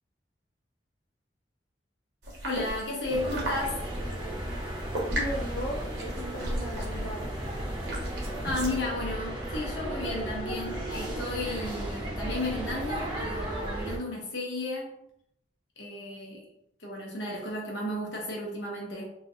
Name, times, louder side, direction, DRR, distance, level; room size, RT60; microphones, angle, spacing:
sound 1, 2.2-8.8, right 1 dB, 65° right, 1.0 m, -36 dB
voice 1, 2.4-3.9 8.4-15.0 15.8-16.5 16.8-19.2, left 1 dB, 75° left, -2 dB, 1.0 m, -33 dB
sound 2, 3.1-14.0, right 1 dB, 25° right, 0.7 m, -35 dB
voice 2, 5.2-7.3, equal, 50° left, -2 dB, 0.4 m, -37 dB
3.0 x 2.8 x 2.6 m, 0.76 s
head